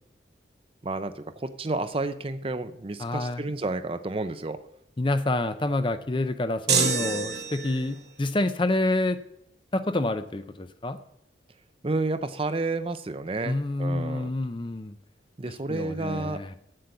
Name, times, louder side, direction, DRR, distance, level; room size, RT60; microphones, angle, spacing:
voice 1, 0.8-4.6 11.8-14.3 15.4-16.4, right 2 dB, 30° right, 10 dB, 0.6 m, -30 dB
voice 2, 3.0-3.5 5.0-9.2 9.7-11.0 13.4-14.9 15.7-16.5, left 2 dB, 25° left, 10 dB, 0.5 m, -28 dB
sound 1, 6.7-8.0, right 6 dB, 60° right, 1.2 m, -26 dB
8.1 x 7.8 x 7.1 m, 0.76 s
head